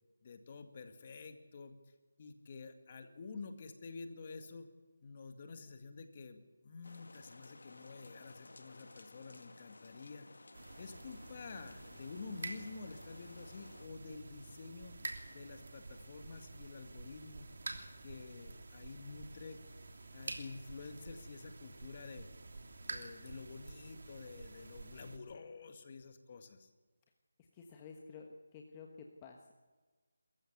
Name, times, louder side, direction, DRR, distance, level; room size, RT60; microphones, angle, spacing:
voice 1, 0.2-1.8 2.2-4.7 5.0-10.3 10.8-17.5 18.0-19.6 20.1-22.3 22.8-26.7, left 4 dB, 35° left, 7 dB, 2.1 m, -49 dB
sound 1, 6.8-13.9, left 2 dB, 75° left, 1.6 m, -57 dB
sound 2, 10.5-25.2, right 3 dB, 60° right, 3.1 m, -49 dB
voice 2, 27.4-29.5, left 5 dB, 20° left, 1 dB, 1.4 m, -52 dB
24.0 x 15.0 x 8.2 m, 1.3 s
figure-of-eight pair, 165°, 0 cm